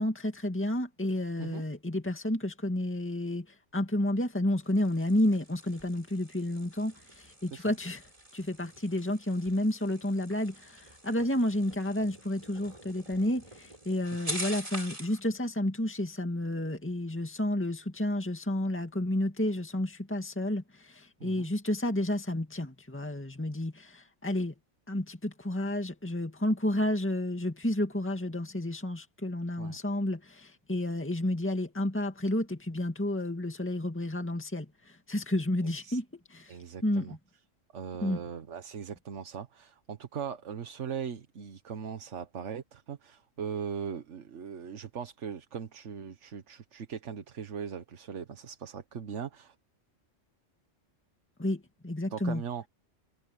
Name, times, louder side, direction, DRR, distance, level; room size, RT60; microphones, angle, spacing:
voice 1, 0.0-8.0 8.3-24.5 24.9-36.0 36.3-36.6 36.8-37.1 38.0-38.2 51.4-52.4, left 1 dB, 10° left, 2.2 m, -31 dB
sound 1, 4.5-15.2, right 1 dB, 25° right, 4.5 m, -45 dB
voice 2, 35.6-36.0 36.5-37.2 37.7-49.5 52.1-52.7, right 7 dB, 70° right, 1.4 m, -39 dB
omnidirectional pair, 1.3 m